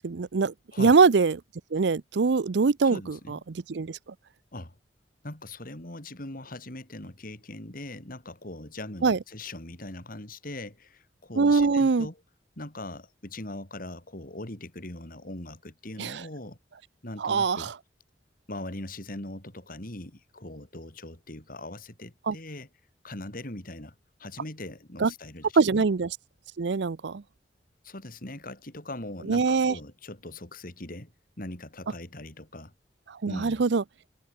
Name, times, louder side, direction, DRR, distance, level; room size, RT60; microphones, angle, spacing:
voice 1, 0.0-1.4 1.7-4.0 9.0-9.2 11.4-12.1 16.0-16.2 17.2-17.7 22.3-22.4 25.0-25.1 25.6-26.1 26.6-27.2 29.3-29.8 33.1-33.8, right 4 dB, 75° right, 0.6 m, -23 dB
voice 2, 2.8-3.4 4.5-4.8 5.2-12.2 12.6-16.6 17.0-17.7 18.5-22.7 23.0-23.9 24.2-25.8 27.8-31.1 31.4-32.7 33.3-33.6, left 1 dB, 50° left, 3.9 m, -40 dB
head